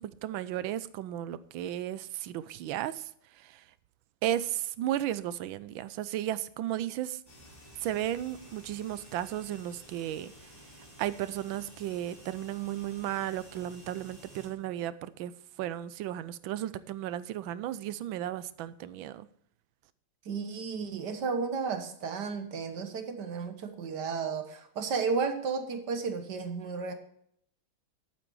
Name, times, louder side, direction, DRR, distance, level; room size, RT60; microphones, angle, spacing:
voice 1, 0.0-3.0 3.4-3.6 4.2-7.2 7.8-10.3 11.0-15.3 15.6-19.3, right 12 dB, 75° right, 16 dB, 1.3 m, -34 dB
sound 1, 7.3-14.5, equal, 30° left, 4.7 m, -53 dB
voice 2, 20.2-26.9, right 5 dB, 55° right, 8 dB, 1.6 m, -33 dB
11.5 x 8.6 x 4.7 m, 0.67 s
omnidirectional pair, 2.3 m